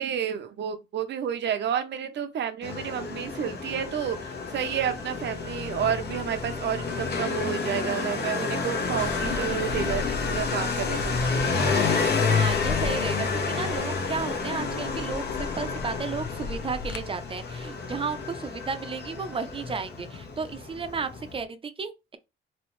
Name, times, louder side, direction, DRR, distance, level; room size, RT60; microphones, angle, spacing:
voice 1, 0.0-11.3, right 9 dB, 65° right, 0.7 m, -30 dB
Motorcycle, 2.6-21.4, left 4 dB, 55° left, 1.0 m, -30 dB
sound 1, 9.0-17.0, left 5 dB, 75° left, 0.6 m, -36 dB
voice 2, 12.3-22.2, right 5 dB, 25° right, 0.6 m, -33 dB
3.2 x 3.0 x 3.1 m
cardioid pair, 90°, 20 cm